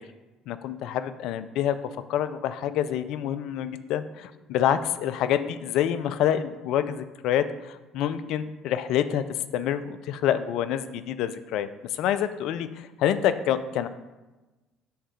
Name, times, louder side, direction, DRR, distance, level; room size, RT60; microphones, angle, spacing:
voice 1, 0.5-1.8 2.1-13.9, left 10 dB, 65° left, 12 dB, 0.3 m, -27 dB
7.1 x 3.7 x 4.9 m, 1.1 s
hypercardioid pair, 60°, 0 cm